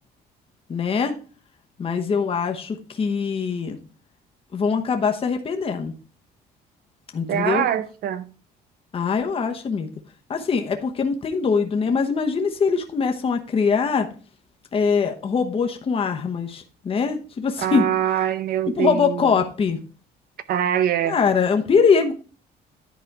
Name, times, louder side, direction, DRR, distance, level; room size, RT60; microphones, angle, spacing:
voice 1, 0.7-1.2 1.8-3.8 4.5-5.9 7.1-7.6 8.9-9.9 10.3-14.1 14.7-17.9 18.7-19.8 21.0-22.1, left 5 dB, 35° left, 1.1 m, -22 dB
voice 2, 7.3-8.2 17.6-19.3 20.5-21.2, right 10 dB, 65° right, 0.7 m, -23 dB
10.5 x 4.2 x 4.7 m
cardioid pair, 110°, 17 cm